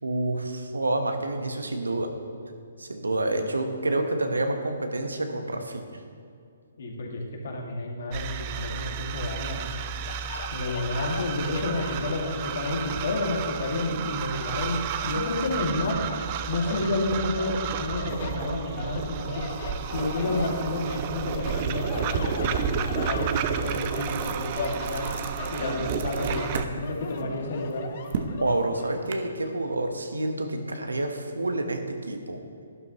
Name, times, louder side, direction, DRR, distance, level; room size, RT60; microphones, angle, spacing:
voice 1, 0.0-2.1 2.8-5.9 28.4-32.4, right 2 dB, 90° right, 5 dB, 1.2 m, -28 dB
voice 2, 6.8-9.7 10.5-16.0 16.5-19.5 19.9-25.1 25.5-27.9, left 2 dB, 65° left, 0 dB, 2.2 m, -30 dB
sound 1, 8.1-26.7, right 8 dB, 35° right, 0.5 m, -32 dB
sound 2, 10.0-13.4 13.9-15.7 16.1-16.9 17.4-21.0 21.3-28.9, left 5 dB, 50° left, 0.9 m, -39 dB
sound 3, 22.4-22.6 23.0-26.7 27.1-29.1, right 5 dB, 50° right, 0.9 m, -36 dB
12.0 x 11.0 x 3.1 m, 2.4 s
hypercardioid pair, 140°, 0 cm